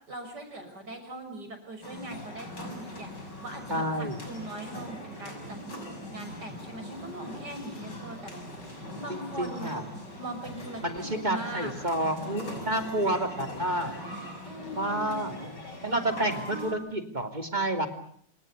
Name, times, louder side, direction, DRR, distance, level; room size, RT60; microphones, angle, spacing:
voice 1, 0.1-5.6 6.1-9.8 10.2-11.7 14.4-15.2, right 1 dB, 70° right, 6 dB, 6.9 m, -41 dB
sound 1, 1.8-16.7, left 1 dB, 75° left, 6.6 m, -41 dB
voice 2, 3.7-4.2 6.1-6.5 9.1-9.8 10.8-13.9 14.7-15.5 15.8-17.9, right 1 dB, 25° right, 6 dB, 3.0 m, -30 dB
27.5 x 26.0 x 6.8 m, 0.63 s
omnidirectional pair, 1.9 m